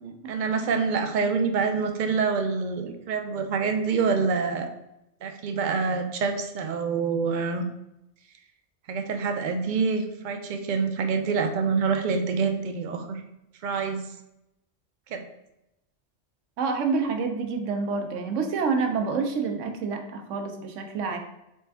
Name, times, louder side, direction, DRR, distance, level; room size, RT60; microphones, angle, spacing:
voice 1, 0.3-4.7 5.2-7.7 8.9-13.2 13.6-14.1 15.1-15.2, right 5 dB, 55° right, 5 dB, 0.6 m, -26 dB
voice 2, 16.6-21.2, right 4 dB, 85° right, 5 dB, 1.0 m, -28 dB
4.3 x 3.4 x 3.4 m, 0.86 s
omnidirectional pair, 1.2 m